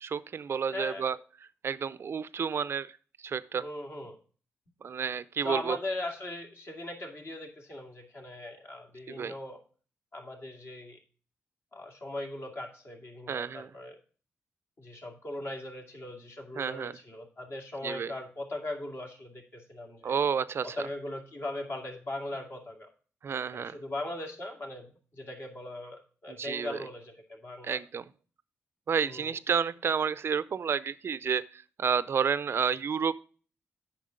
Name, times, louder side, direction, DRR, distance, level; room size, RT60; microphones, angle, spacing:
voice 1, 0.0-1.2 1.6-2.9 3.2-3.6 4.8-5.8 9.1-9.3 13.3-13.7 16.6-16.9 17.8-18.1 20.0-20.9 23.2-23.8 26.3-26.8 27.6-28.0 28.9-33.3, right 6 dB, 55° right, 17 dB, 0.5 m, -30 dB
voice 2, 0.7-1.2 3.5-4.2 5.4-9.6 10.1-11.0 11.7-14.0 14.8-20.2 20.6-22.9 23.5-27.8 29.1-29.4, left 1 dB, 50° left, 1 dB, 2.4 m, -39 dB
8.6 x 6.1 x 5.0 m, 0.40 s
cardioid pair, 65°, 5 cm